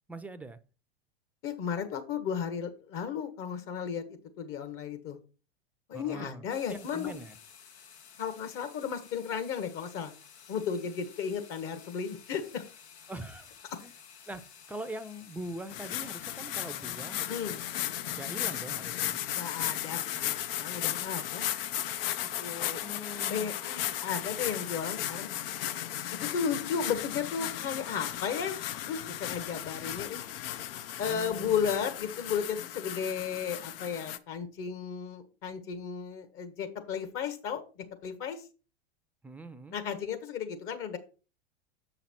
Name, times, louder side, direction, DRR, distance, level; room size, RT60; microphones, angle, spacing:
voice 1, 0.1-0.6 5.9-7.4 13.1-13.5 13.8-13.9 14.3-17.4 18.1-19.2 22.7-23.5 31.1-31.7 39.2-39.8, right 1 dB, 5° right, 0.6 m, -43 dB
voice 2, 1.4-5.2 5.9-7.1 8.2-10.1 10.5-12.6 17.3-17.6 19.3-21.5 22.4-22.8 23.3-25.3 26.1-28.6 28.8-30.2 31.0-38.4 39.7-41.0, left 7 dB, 40° left, 1.5 m, -34 dB
sound 1, 6.5-17.8, left 7 dB, 75° left, 1.2 m, -54 dB
sound 2, 15.7-34.2, left 12 dB, 60° left, 0.7 m, -35 dB
7.1 x 5.8 x 4.4 m
hypercardioid pair, 95°, 33 cm